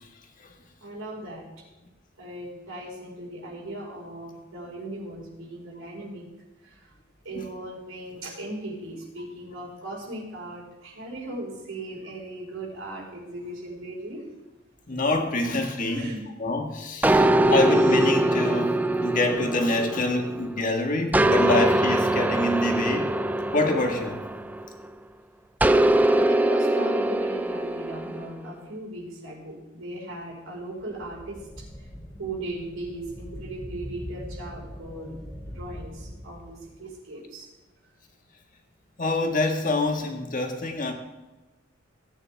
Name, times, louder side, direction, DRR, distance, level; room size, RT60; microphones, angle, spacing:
voice 1, 0.8-1.5 2.2-6.3 6.6-6.7 7.2-14.2 15.9-16.2 17.3-17.5 26.1-31.4 32.2-35.1 35.5-37.5, right 1 dB, 90° right, -3 dB, 4.9 m, -37 dB
voice 2, 14.9-16.1 16.4-23.1 23.5-24.2 39.0-40.9, left 2 dB, 40° left, 2 dB, 1.7 m, -26 dB
sound 1, 17.0-20.6 21.1-24.8 25.6-28.3, right 1 dB, 10° right, 0.3 m, -22 dB
sound 2, 30.7-36.9, equal, 20° left, 2.3 m, -42 dB
18.0 x 9.3 x 3.5 m, 1.1 s
head